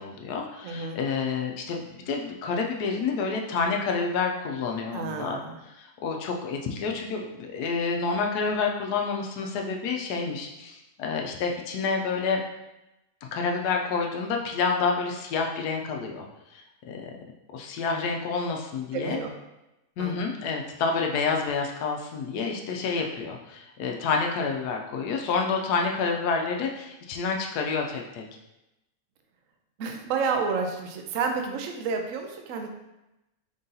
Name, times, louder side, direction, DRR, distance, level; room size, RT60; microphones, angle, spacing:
voice 1, 0.0-1.8 2.1-5.4 5.7-12.4 13.3-16.3 16.5-16.6 16.9-17.1 17.5-19.2 20.0-28.2, left 4 dB, 80° left, 2 dB, 1.1 m, -28 dB
voice 2, 0.6-1.0 4.9-5.6 18.9-19.3 20.0-20.2 29.8-32.7, right 5 dB, 65° right, 3 dB, 0.8 m, -30 dB
3.7 x 2.7 x 3.8 m, 0.93 s
omnidirectional pair, 1.7 m